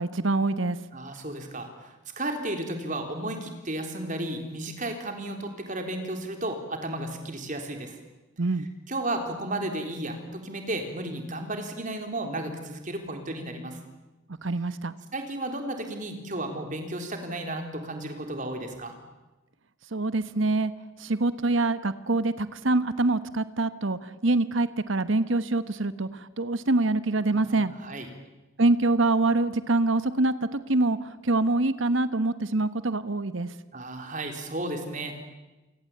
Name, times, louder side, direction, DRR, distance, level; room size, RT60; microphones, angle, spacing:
voice 1, 0.0-0.8 8.4-8.7 14.4-14.9 19.9-20.7 21.0-27.7 28.6-33.5, right 2 dB, 65° right, 13 dB, 1.2 m, -25 dB
voice 2, 0.9-8.0 8.9-13.8 15.1-19.0 27.3-28.1 33.7-35.1, right 1 dB, 40° right, 5 dB, 3.8 m, -33 dB
27.5 x 24.5 x 8.7 m, 1.1 s
head